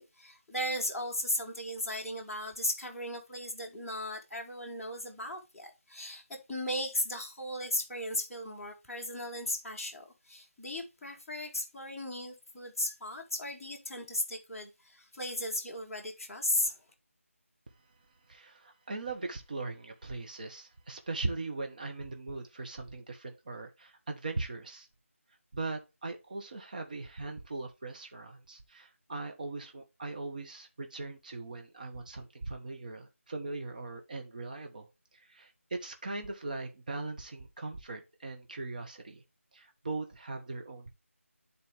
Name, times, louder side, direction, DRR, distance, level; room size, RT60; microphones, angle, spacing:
voice 1, 0.0-16.8, left 1 dB, ahead, 1.0 m, -36 dB
voice 2, 18.3-24.9 25.5-34.9 35.1-39.2 39.5-40.9, right 3 dB, 35° right, 1.0 m, -40 dB
10.0 x 4.1 x 3.3 m
figure-of-eight pair, 165°, 7 cm